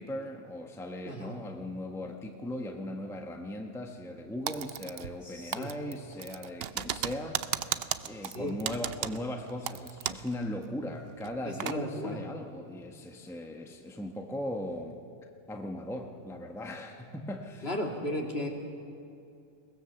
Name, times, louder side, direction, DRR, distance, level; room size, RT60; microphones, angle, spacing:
voice 1, 0.0-17.7, left 1 dB, ahead, 3 dB, 1.1 m, -38 dB
voice 2, 1.0-1.4 5.2-5.7 8.2-8.6 11.4-12.2 17.6-18.5, left 1 dB, 50° left, 1 dB, 2.7 m, -35 dB
Typing, 4.5-5.3 5.5-10.3 10.6-10.7 11.2-11.8, right 9 dB, 60° right, 0.8 m, -35 dB
22.0 x 19.5 x 7.0 m, 2.5 s
omnidirectional pair, 1.3 m